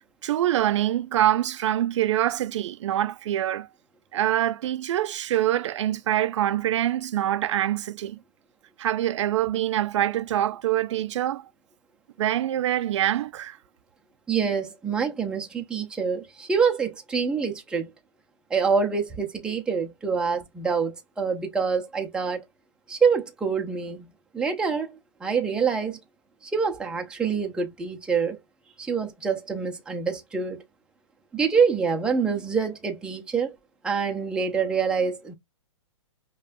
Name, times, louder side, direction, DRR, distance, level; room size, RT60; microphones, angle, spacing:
voice 1, 0.0-3.7 4.1-8.2 8.8-11.4 12.2-13.6, right 12 dB, 65° right, 0.4 m, -25 dB
voice 2, 14.3-17.9 18.5-22.4 22.9-26.0 26.4-28.4 28.8-30.6 31.3-33.5 33.8-35.3, right 5 dB, 5° right, 0.6 m, -26 dB
5.3 x 2.3 x 2.5 m
hypercardioid pair, 150°, 16 cm